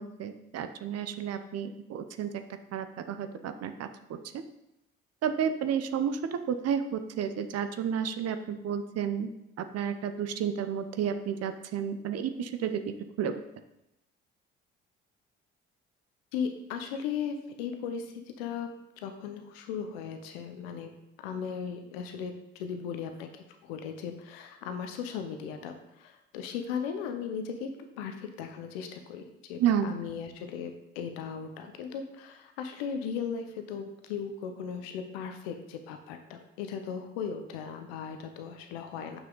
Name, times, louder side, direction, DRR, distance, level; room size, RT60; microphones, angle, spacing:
voice 1, 0.0-2.3 2.7-4.2 5.2-6.2 6.5-9.3 9.6-12.8 13.2-13.3 29.6-29.9, right 8 dB, 55° right, 9 dB, 0.8 m, -31 dB
voice 2, 16.3-18.7 19.0-20.9 21.2-27.7 28.0-39.2, left 7 dB, 85° left, 6 dB, 0.8 m, -37 dB
7.3 x 5.9 x 3.9 m, 0.89 s
hypercardioid pair, 55°, 29 cm